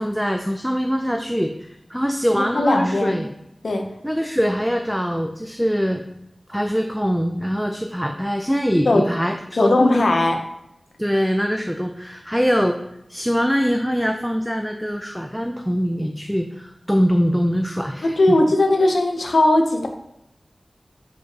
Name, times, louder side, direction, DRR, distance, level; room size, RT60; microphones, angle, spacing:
voice 1, 0.0-3.3 4.0-6.0 6.5-10.0 11.0-12.8 13.1-18.4, equal, ahead, 4 dB, 0.5 m, -23 dB
voice 2, 2.3-3.2 3.6-3.8 8.9-9.0 9.5-10.3 18.2-19.9, left 2 dB, 80° left, 3 dB, 0.9 m, -18 dB
7.7 x 5.1 x 3.0 m, 0.82 s
wide cardioid pair, 50°, 0 cm